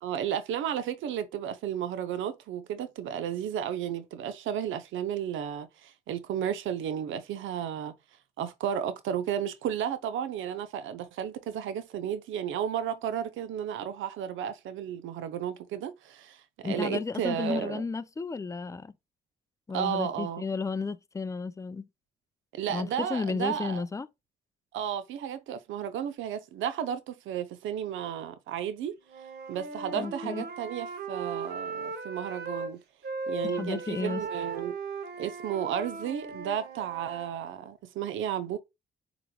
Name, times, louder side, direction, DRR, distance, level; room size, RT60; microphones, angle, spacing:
voice 1, 0.0-7.9 8.4-17.8 19.7-20.4 22.5-23.8 24.7-29.0 29.5-32.8 33.3-34.7 35.2-38.6, right 9 dB, 80° right, 0.6 m, -33 dB
voice 2, 16.6-18.9 19.7-21.9 22.7-24.1 30.0-30.4 33.4-34.2, left 4 dB, 15° left, 0.4 m, -33 dB
Wind instrument woodwind instrument, 29.1-32.7 33.0-37.3, right 4 dB, 55° right, 1.2 m, -37 dB
7.5 x 3.0 x 2.2 m
cardioid pair, 90°, 20 cm